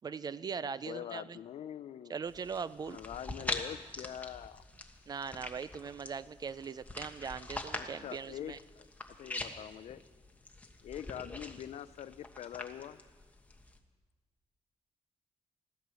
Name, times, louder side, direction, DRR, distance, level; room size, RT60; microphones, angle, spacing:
voice 1, 0.0-1.4 2.1-3.0 5.1-8.6, right 6 dB, 35° right, 17 dB, 0.4 m, -40 dB
voice 2, 0.5-2.2 2.9-4.6 7.7-8.9 9.2-10.0 10.8-13.0, left 10 dB, 75° left, 14 dB, 0.5 m, -44 dB
sound 1, 2.3-13.8, left 2 dB, 15° left, 1.3 m, -44 dB
15.5 x 12.5 x 6.3 m, 1.4 s
cardioid pair, 115°, 11 cm